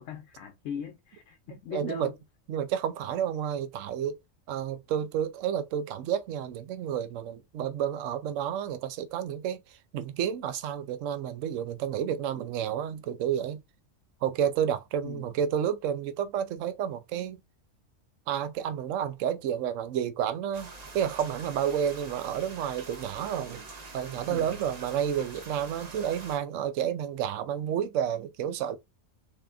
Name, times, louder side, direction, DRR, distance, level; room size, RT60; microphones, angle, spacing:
voice 1, 0.0-2.2 15.0-15.3 24.3-24.6, left 7 dB, 75° left, 1.0 m, -39 dB
voice 2, 1.7-2.1 2.5-4.1 4.5-9.6 9.9-13.6 14.2-17.4 18.3-23.7 23.9-28.8, right 9 dB, 75° right, 0.9 m, -30 dB
sound 1, 20.5-26.4, right 3 dB, 35° right, 0.8 m, -45 dB
4.2 x 3.5 x 2.4 m
omnidirectional pair, 1.3 m